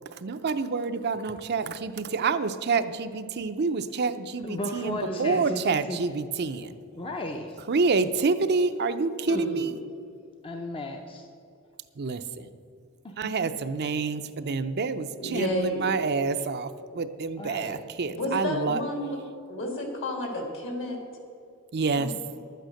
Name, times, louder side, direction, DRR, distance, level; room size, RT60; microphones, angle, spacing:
voice 1, 0.2-6.7 7.7-9.7 12.0-12.5 13.2-18.8 21.7-22.1, right 4 dB, 50° right, 10 dB, 0.5 m, -28 dB
voice 2, 4.4-6.2 6.9-7.6 8.1-8.2 8.6-8.7 10.4-11.3 13.0-13.6 16.8-16.9 17.4-17.8, left 1 dB, 25° left, 3 dB, 0.7 m, -36 dB
voice 3, 5.0-5.4 9.3-9.7 15.2-16.0 18.1-19.2 19.5-21.0 22.0-22.3, left 1 dB, 65° left, 2 dB, 2.8 m, -31 dB
11.5 x 9.2 x 6.4 m, 2.4 s
head